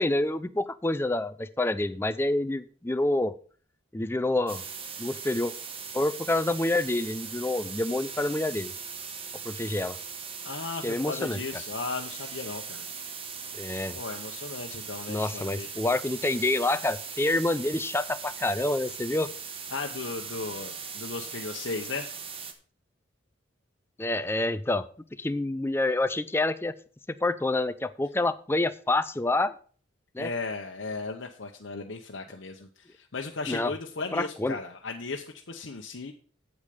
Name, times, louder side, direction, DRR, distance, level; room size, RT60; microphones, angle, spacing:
voice 1, 0.0-3.3 3.9-4.6 5.0-5.5 5.9-8.7 9.4-10.0 10.8-11.4 13.6-14.0 15.1-19.3 24.0-24.9 25.2-26.7 27.2-29.5 30.1-30.3 33.5-33.7 34.1-34.6, left 2 dB, 10° left, 13 dB, 0.4 m, -27 dB
sound 1, 4.5-22.5, right 6 dB, 30° right, 1.1 m, -39 dB
voice 2, 10.4-12.9 13.9-15.7 19.7-22.2 30.2-36.1, left 4 dB, 70° left, 2 dB, 0.9 m, -36 dB
8.7 x 8.2 x 5.0 m, 0.44 s
head